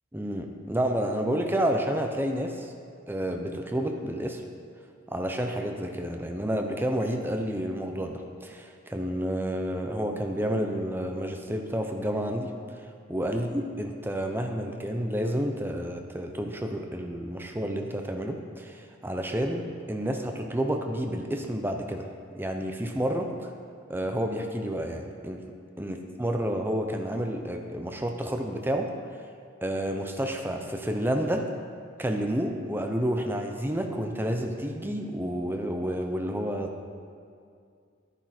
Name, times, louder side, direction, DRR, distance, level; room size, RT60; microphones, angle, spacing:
voice 1, 0.1-2.7 3.1-4.4 5.1-12.5 13.1-22.1 22.4-23.5 23.9-25.4 25.8-28.9 29.6-31.5 32.0-36.9, equal, 10° right, 4 dB, 0.7 m, -30 dB
11.5 x 10.0 x 4.3 m, 2.3 s
head